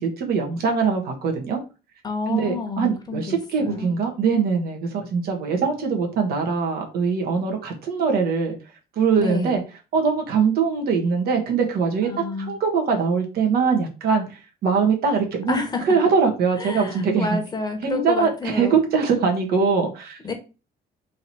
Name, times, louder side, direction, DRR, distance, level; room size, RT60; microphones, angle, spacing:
voice 1, 0.0-1.6 2.3-8.6 8.9-9.6 9.9-12.1 12.4-15.6 15.9-17.4 17.8-20.2, right 5 dB, 65° right, 3 dB, 1.5 m, -22 dB
voice 2, 2.0-3.9 9.2-9.5 12.0-12.6 15.5-16.0 16.6-18.7 20.2-20.3, left 3 dB, 25° left, 4 dB, 1.3 m, -29 dB
3.9 x 3.0 x 4.2 m, 0.31 s
cardioid pair, 110°, 17 cm